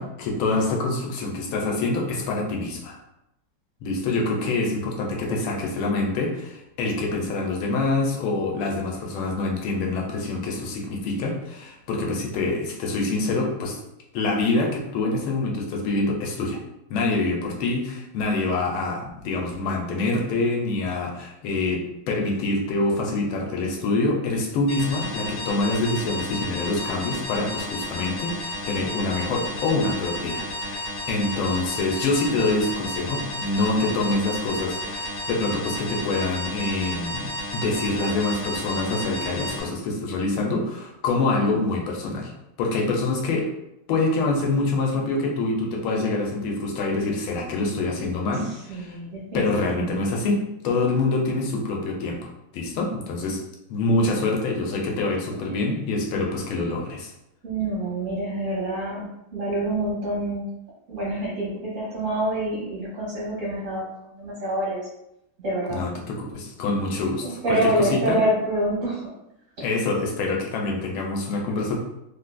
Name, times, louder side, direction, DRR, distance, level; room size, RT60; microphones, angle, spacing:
voice 1, 0.0-3.0 3.8-13.7 14.1-16.6 16.9-21.8 22.1-42.3 42.6-43.5 43.9-48.9 49.3-50.4 50.6-53.4 53.7-57.1 65.7-65.9 66.2-67.6 68.1-68.2 69.6-71.7, left 2 dB, 85° left, 0 dB, 1.5 m, -26 dB
sound 1, 24.7-39.6, left 1 dB, 40° left, 0.8 m, -32 dB
voice 2, 48.3-50.2 55.4-55.8 57.4-60.5 60.9-64.8 65.4-65.8 67.2-69.2, right 1 dB, 60° right, -5 dB, 0.8 m, -27 dB
3.6 x 2.5 x 2.3 m, 0.84 s
omnidirectional pair, 2.3 m